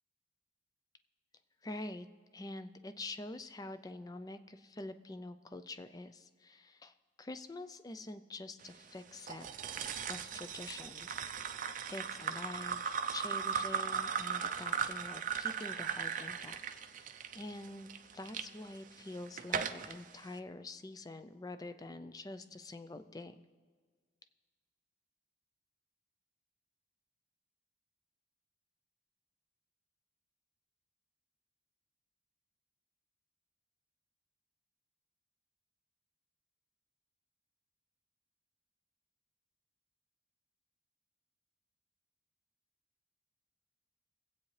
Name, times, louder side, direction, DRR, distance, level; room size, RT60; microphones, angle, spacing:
voice 1, 1.6-2.1 2.3-9.5 10.1-11.6 11.9-16.6 17.0-23.3, left 2 dB, 20° left, 10 dB, 0.4 m, -46 dB
sound 1, 9.3-18.4 19.0-19.9, right 7 dB, 40° right, 0.5 m, -37 dB
23.5 x 8.4 x 3.2 m, 1.5 s
head